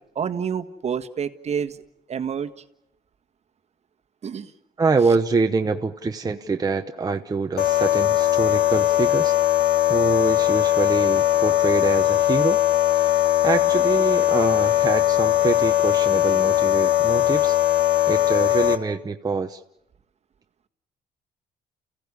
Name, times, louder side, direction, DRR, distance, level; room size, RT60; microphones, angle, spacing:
voice 1, 0.1-1.8 2.1-2.5 4.2-4.5, right 7 dB, 45° right, 8 dB, 1.6 m, -28 dB
voice 2, 4.8-9.4 9.9-12.6 12.9-17.6 18.1-19.6, right 4 dB, 25° right, 5 dB, 1.0 m, -25 dB
sound 1, 7.6-18.8, left 13 dB, 75° left, 1.8 m, -20 dB
29.5 x 16.0 x 9.9 m, 0.83 s
cardioid pair, 100°, 16 cm